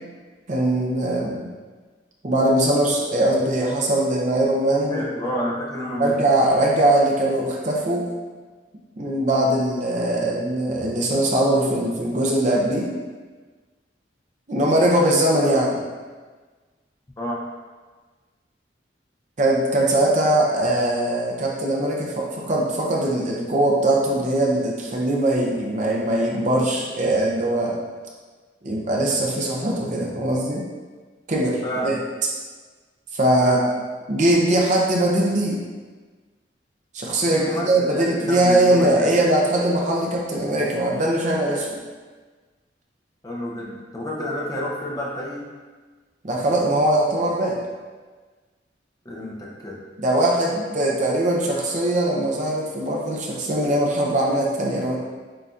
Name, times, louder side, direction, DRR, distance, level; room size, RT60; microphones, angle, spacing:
voice 1, 0.5-1.5 2.2-5.0 6.0-8.1 9.0-12.9 14.5-15.8 19.4-27.8 28.6-30.7 31.3-32.0 33.1-33.8 34.1-35.6 36.9-41.7 46.2-47.6 50.0-55.0, right 1 dB, 40° right, -2 dB, 0.6 m, -21 dB
voice 2, 4.9-6.1 17.2-17.4 31.6-32.0 33.4-33.7 37.3-39.1 43.2-45.4 49.0-49.8, equal, 20° left, -4 dB, 0.7 m, -29 dB
7.5 x 2.7 x 2.4 m, 1.4 s
head